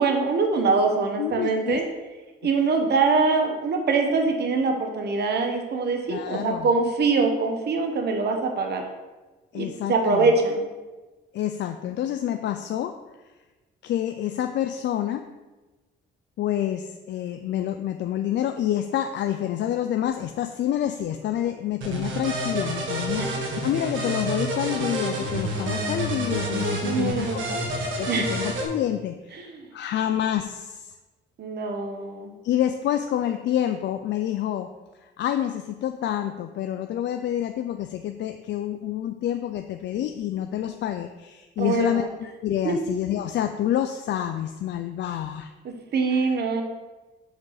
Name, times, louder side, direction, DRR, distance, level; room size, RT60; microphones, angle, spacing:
voice 1, 0.0-1.8 2.4-8.8 9.5-10.6 23.2-23.3 26.8-27.6 28.1-28.3 29.3-29.7 31.4-32.3 41.6-42.1 42.6-42.8 45.6-46.6, right 4 dB, 55° right, 4 dB, 1.0 m, -24 dB
voice 2, 1.2-1.8 6.1-6.7 9.5-10.3 11.3-13.0 13.8-15.3 16.4-27.4 27.9-29.5 29.7-30.9 32.4-34.7 35.0-45.5 46.1-46.2, left 11 dB, 65° left, 6 dB, 0.4 m, -28 dB
sound 1, 21.8-28.7, right 1 dB, 70° right, 1.5 m, -29 dB
6.0 x 5.1 x 4.0 m, 1.2 s
cardioid pair, 90°, 20 cm